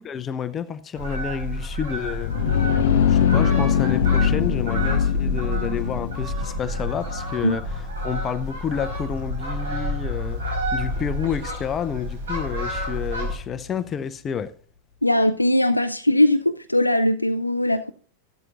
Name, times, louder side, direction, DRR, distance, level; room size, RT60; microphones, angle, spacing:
voice 1, 0.0-2.3 2.9-7.6 8.0-10.4 10.7-14.5, left 8 dB, 25° left, 0.6 m, -29 dB
Fowl, 0.9-13.4, equal, 65° right, 5.3 m, -30 dB
sound 1, 2.0-13.6, left 8 dB, 55° left, 0.7 m, -25 dB
voice 2, 15.0-17.9, left 1 dB, 85° left, 0.4 m, -20 dB
14.5 x 12.0 x 2.5 m
figure-of-eight pair, 90°, 0 cm